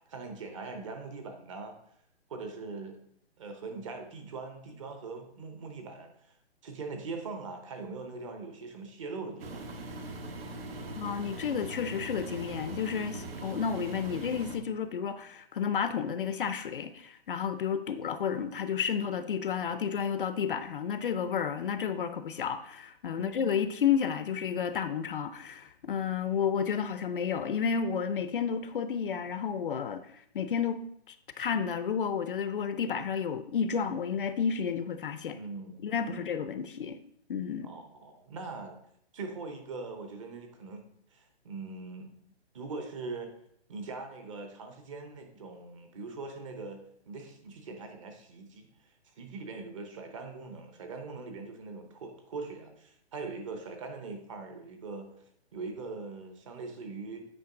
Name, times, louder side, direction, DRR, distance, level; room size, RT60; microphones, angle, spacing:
voice 1, 0.0-1.8 2.3-3.0 3.4-6.3 6.6-10.0 23.1-23.6 35.3-36.3 37.6-38.7 39.1-40.9 41.1-42.1 42.5-43.3 43.7-48.7 49.0-55.1 55.5-57.2, right 3 dB, 30° right, 5 dB, 0.9 m, -41 dB
Engine, 9.4-14.6, right 2 dB, 60° right, 1.2 m, -41 dB
voice 2, 11.0-30.0 30.3-30.8 31.1-35.4 35.8-37.0 37.3-37.7, left 7 dB, 50° left, 10 dB, 0.5 m, -31 dB
8.6 x 5.1 x 3.8 m, 0.70 s
hypercardioid pair, 165°, 34 cm